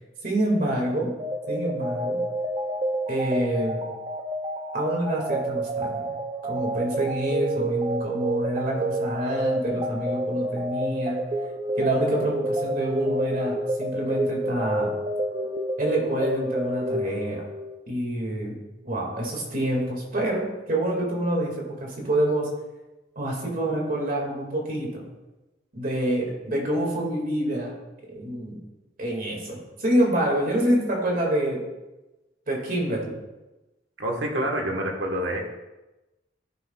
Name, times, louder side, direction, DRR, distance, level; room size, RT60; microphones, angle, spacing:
voice 1, 0.2-1.2 1.5-2.2 3.1-3.8 4.7-6.0 6.4-11.2 11.8-14.9 15.8-17.4 17.9-18.6 18.8-22.5 23.2-25.1 25.7-27.7 28.1-28.6 29.0-31.7 32.5-33.1, right 1 dB, 50° right, -1 dB, 2.1 m, -27 dB
sound 1, 1.2-17.8, right 1 dB, 30° right, 0.5 m, -29 dB
voice 2, 34.0-35.4, right 1 dB, 70° right, 1 dB, 1.4 m, -27 dB
14.0 x 5.9 x 2.3 m, 1.1 s
head